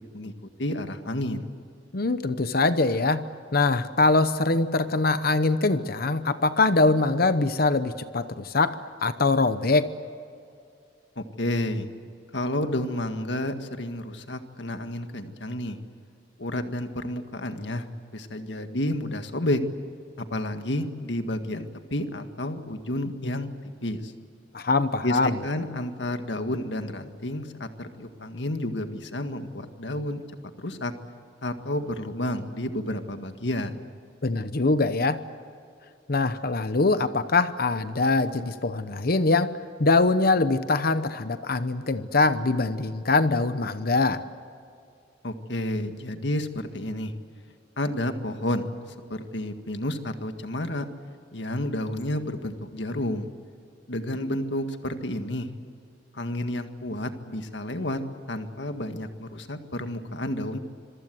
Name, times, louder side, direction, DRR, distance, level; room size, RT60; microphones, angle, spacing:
voice 1, 0.6-1.5 11.2-11.9 12.3-15.8 16.4-17.9 18.1-19.6 20.2-23.5 23.8-24.1 25.0-30.2 30.6-30.9 31.4-33.8 45.2-47.1 47.8-48.7 49.1-50.9 51.3-53.3 53.9-55.5 56.1-58.0 58.3-60.6, left 1 dB, 75° left, 7 dB, 1.9 m, -30 dB
voice 2, 1.9-3.2 3.5-9.9 24.5-25.4 34.2-35.2 36.1-39.5 39.8-44.2, left 3 dB, 55° left, 12 dB, 0.9 m, -23 dB
26.0 x 23.5 x 7.8 m, 2.4 s
head